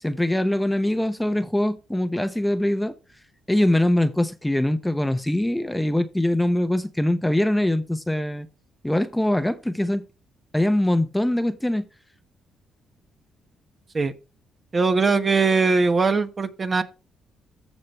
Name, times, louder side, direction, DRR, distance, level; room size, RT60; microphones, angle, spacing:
voice 1, 0.0-2.9 3.5-8.5 8.8-10.0 10.5-11.9, left 1 dB, 5° left, 0.9 m, -23 dB
voice 2, 14.7-16.8, right 4 dB, 35° right, 1.2 m, -20 dB
14.5 x 5.2 x 3.2 m
cardioid pair, 90°, 0 cm